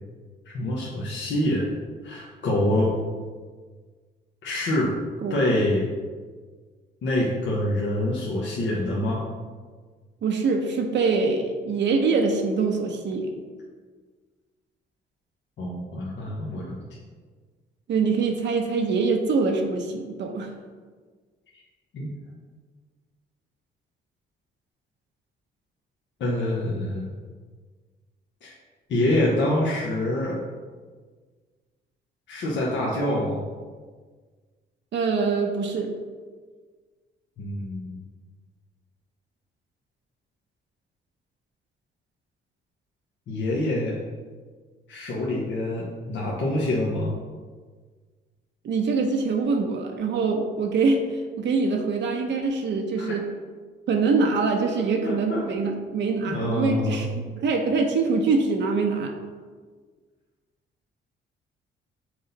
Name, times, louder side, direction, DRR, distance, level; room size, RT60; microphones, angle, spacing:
voice 1, 0.4-1.7 2.0-2.9 4.4-4.9 5.3-5.9 7.0-9.3 15.6-16.8 21.9-22.1 26.2-27.1 28.4-28.5 28.9-30.4 32.3-33.4 37.4-38.0 43.3-44.0 44.9-47.1 53.0-53.1 55.0-55.4 56.3-57.0, left 1 dB, 65° left, -5 dB, 1.1 m, -26 dB
voice 2, 10.2-13.3 17.9-20.5 34.9-35.9 48.6-51.0 51.4-53.2 53.9-57.1 57.4-59.1, right 4 dB, 65° right, 3 dB, 0.8 m, -24 dB
6.2 x 4.1 x 4.0 m, 1.5 s
cardioid pair, 90°, 20 cm